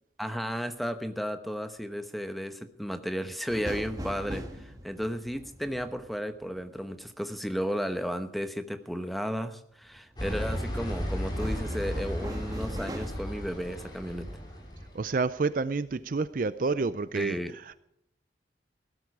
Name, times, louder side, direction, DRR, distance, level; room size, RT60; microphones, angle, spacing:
voice 1, 0.2-14.3 17.1-17.6, equal, ahead, 8 dB, 1.0 m, -34 dB
sound 1, 3.5-7.3 9.9-10.3 10.8-13.1, equal, 20° right, 1.6 m, -41 dB
sound 2, 10.2-15.0, equal, 20° left, 4.2 m, -34 dB
voice 2, 14.9-17.8, right 4 dB, 45° right, 15 dB, 0.4 m, -29 dB
16.5 x 13.0 x 4.9 m, 0.74 s
head